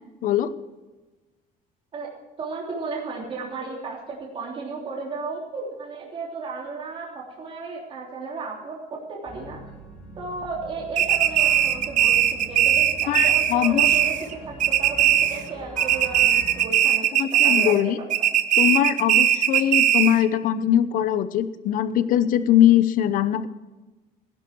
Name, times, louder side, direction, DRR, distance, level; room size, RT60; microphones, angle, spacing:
voice 1, 2.4-9.6 10.2-14.1 14.5-17.8, right 4 dB, 35° right, -3 dB, 3.3 m, -34 dB
sound 1, 9.2-16.7, equal, 5° left, 3.9 m, -42 dB
sound 2, 11.0-14.3 14.6-15.5 15.8-17.8 18.1-20.2, right 11 dB, 55° right, 0.9 m, -19 dB
voice 2, 13.1-13.9 17.1-18.0 18.6-23.5, left 11 dB, 60° left, 14 dB, 0.8 m, -21 dB
17.0 x 11.0 x 4.6 m, 1.2 s
cardioid pair, 165°, 16 cm